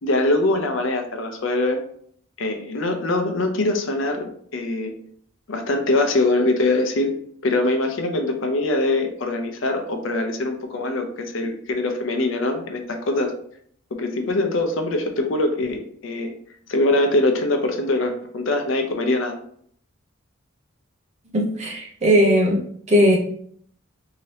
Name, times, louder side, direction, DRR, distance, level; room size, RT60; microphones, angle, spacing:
voice 1, 0.0-1.8 2.4-4.9 5.5-7.1 7.4-13.3 13.9-16.3 16.7-19.3, left 2 dB, 70° left, 5 dB, 0.6 m, -23 dB
voice 2, 21.3-22.6 22.9-23.2, equal, 35° right, -1 dB, 0.7 m, -18 dB
2.8 x 2.8 x 3.1 m, 0.62 s
head